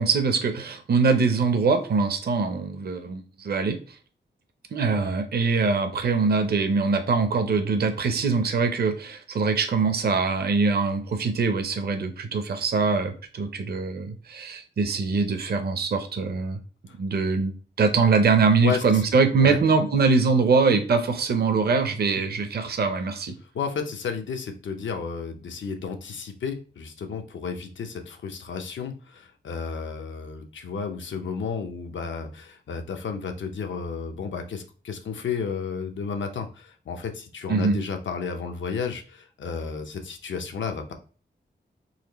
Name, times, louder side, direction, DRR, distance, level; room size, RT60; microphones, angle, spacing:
voice 1, 0.0-3.8 4.7-16.6 16.9-23.4 37.5-37.8, right 4 dB, 55° right, 7 dB, 0.6 m, -23 dB
voice 2, 18.6-19.0 19.4-19.6 23.4-40.9, left 5 dB, 90° left, 5 dB, 0.6 m, -32 dB
4.1 x 2.8 x 2.9 m, 0.39 s
wide cardioid pair, 140°, 19 cm